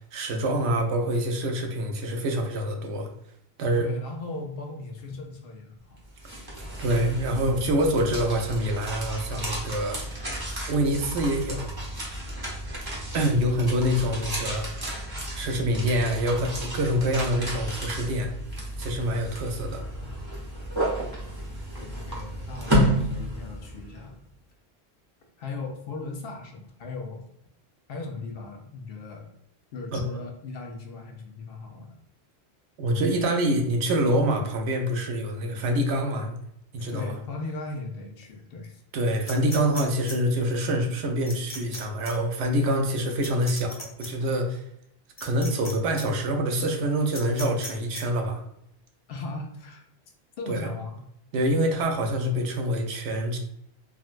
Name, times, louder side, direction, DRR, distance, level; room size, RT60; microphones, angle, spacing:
voice 1, 0.1-3.1 3.6-3.9 6.8-10.0 10.7-11.7 13.1-14.9 15.3-18.3 18.8-19.8 29.9-30.1 32.8-36.4 36.7-37.1 38.9-44.6 45.2-48.4 50.5-50.7 51.3-53.4, equal, 80° right, 4 dB, 0.9 m, -26 dB
voice 2, 3.8-6.0 21.8-24.2 25.4-27.2 27.9-29.3 29.7-32.0 36.9-38.8 49.1-49.8 50.4-51.0, left 3 dB, 65° left, 2 dB, 0.8 m, -38 dB
sound 1, 6.0-24.0, equal, 25° right, 0.7 m, -32 dB
sound 2, 39.2-40.1 41.3-41.8 42.0-42.1 43.2-44.1 45.2-45.7 46.0-46.1 47.1-48.0, left 1 dB, 35° left, 0.6 m, -37 dB
3.7 x 2.2 x 2.4 m, 0.75 s
omnidirectional pair, 1.1 m